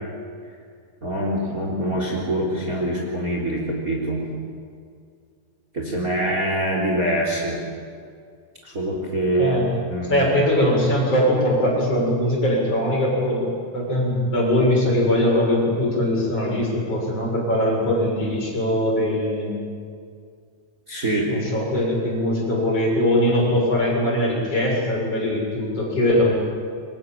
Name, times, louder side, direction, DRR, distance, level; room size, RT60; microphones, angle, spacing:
voice 1, 1.0-4.2 5.7-7.6 8.6-9.6 9.9-10.3 20.9-21.3, right 1 dB, 25° right, -1 dB, 3.9 m, -24 dB
voice 2, 9.4-9.7 10.1-19.5 21.3-26.3, left 1 dB, 40° left, -3 dB, 8.3 m, -21 dB
29.0 x 24.0 x 7.6 m, 2.2 s
omnidirectional pair, 4.0 m